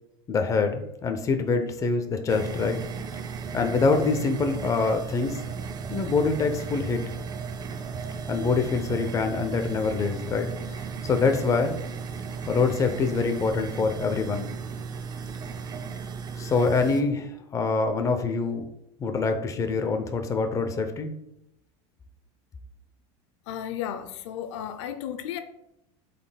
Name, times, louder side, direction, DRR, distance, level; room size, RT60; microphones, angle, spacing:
voice 1, 0.3-2.8 3.5-5.4 5.9-7.0 8.3-10.5 11.0-11.8 12.5-14.5 16.4-18.7 19.0-21.1, left 4 dB, 20° left, 0.6 m, -25 dB
sound 1, 2.3-17.0, right 5 dB, 25° right, 0.5 m, -35 dB
voice 2, 23.5-25.4, left 10 dB, 80° left, 0.6 m, -34 dB
11.0 x 4.2 x 2.2 m
supercardioid pair, 135°, 15 cm